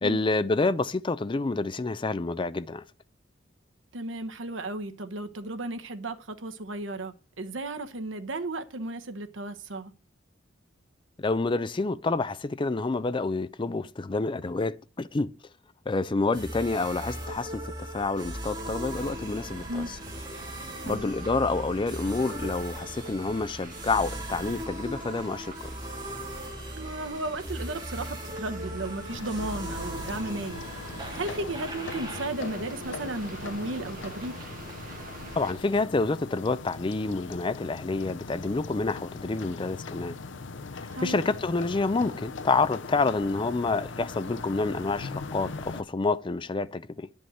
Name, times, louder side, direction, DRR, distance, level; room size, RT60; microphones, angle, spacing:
voice 1, 0.0-2.8 11.2-15.3 15.9-19.8 20.9-25.7 35.4-40.2 41.0-47.1, left 3 dB, 25° left, 0.5 m, -28 dB
voice 2, 3.9-9.9 19.7-19.9 20.8-21.1 26.7-30.7 30.9-34.3 40.9-41.2, right 2 dB, 85° right, 1.0 m, -34 dB
sound 1, 16.3-35.8, right 1 dB, 25° right, 2.4 m, -39 dB
sound 2, 18.9-35.5, right 1 dB, 45° right, 1.9 m, -46 dB
sound 3, 29.1-45.8, left 4 dB, 75° left, 0.7 m, -40 dB
10.0 x 5.4 x 7.7 m
head